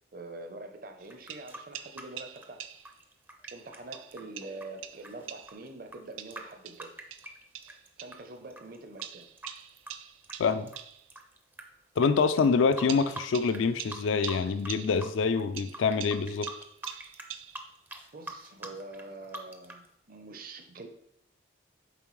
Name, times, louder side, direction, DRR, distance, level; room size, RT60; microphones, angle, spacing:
voice 1, 0.1-2.7 3.5-6.9 7.6-9.3 18.1-20.9, right 2 dB, 45° right, 6 dB, 0.6 m, -45 dB
sound 1, 1.0-8.2 8.5-11.6 12.0-12.1 12.4-13.6 13.9-14.7 15.0-19.9, right 2 dB, 10° right, 0.4 m, -44 dB
sound 2, 1.0-3.0 3.5-5.7 6.2-8.3 9.0-11.1 12.0-12.1 12.9-15.2 15.6-17.8, right 10 dB, 85° right, 0.4 m, -44 dB
voice 2, 10.4-10.7 12.0-16.5, left 5 dB, 75° left, 12 dB, 0.4 m, -26 dB
6.9 x 4.5 x 3.1 m, 0.75 s
head